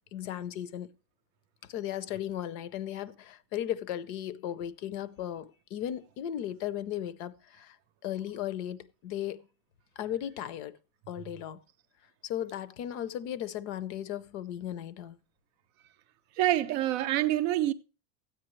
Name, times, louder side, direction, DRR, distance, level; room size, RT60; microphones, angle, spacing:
voice 1, 0.1-0.9 1.7-7.8 8.0-9.4 10.0-10.8 11.1-11.6 12.2-15.2, left 11 dB, 45° left, 0.6 m, -36 dB
voice 2, 16.4-17.7, right 14 dB, 45° right, 0.5 m, -26 dB
13.5 x 8.9 x 3.1 m
supercardioid pair, 175°, 50 cm